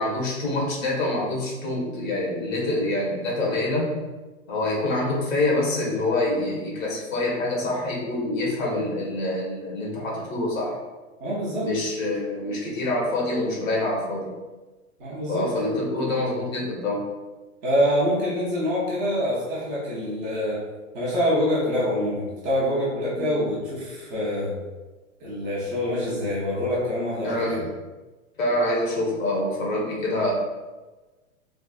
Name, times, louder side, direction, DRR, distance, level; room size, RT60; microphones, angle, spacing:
voice 1, 0.0-3.9 4.5-10.8 11.6-14.3 15.3-17.0 23.1-23.3 27.2-27.7 28.4-30.3, left 1 dB, 65° left, -3 dB, 1.4 m, -26 dB
voice 2, 11.2-11.7 15.0-15.4 17.6-20.6 20.9-24.5 25.2-27.4, equal, 20° right, -7 dB, 0.7 m, -25 dB
3.5 x 2.5 x 2.4 m, 1.2 s
hypercardioid pair, 150°, 42 cm